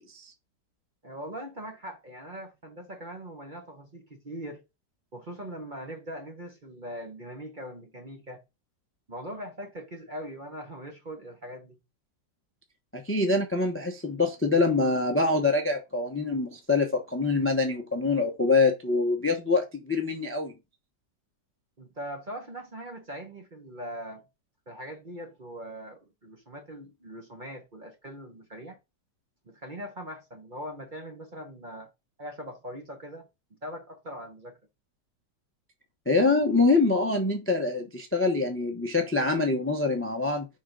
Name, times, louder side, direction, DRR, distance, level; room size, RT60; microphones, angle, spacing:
voice 1, 1.0-4.6 5.1-8.4 9.1-11.8 21.8-24.3 24.7-28.8 29.5-31.9 32.2-33.3 33.6-34.6, equal, 35° right, 0.9 m, -41 dB
voice 2, 12.9-20.5 36.1-40.5, left 3 dB, 15° left, 0.5 m, -25 dB
5.1 x 3.8 x 5.2 m
omnidirectional pair, 1.9 m